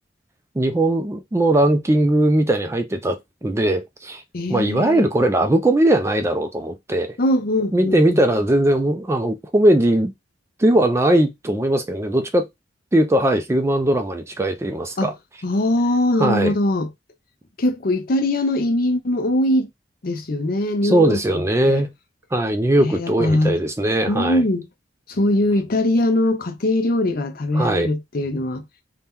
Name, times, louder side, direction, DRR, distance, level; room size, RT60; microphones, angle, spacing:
voice 1, 0.6-4.2 4.5-7.2 7.7-10.1 10.6-12.5 12.9-15.1 16.2-16.5 20.8-21.9 22.3-24.4 27.5-27.9, right 1 dB, 15° right, 0.3 m, -19 dB
voice 2, 4.3-5.1 7.2-8.2 15.0-15.1 15.4-16.9 17.6-19.7 20.0-21.8 22.8-23.6 24.1-24.7 25.1-28.6, left 1 dB, 50° left, 0.6 m, -21 dB
2.8 x 2.2 x 3.4 m
head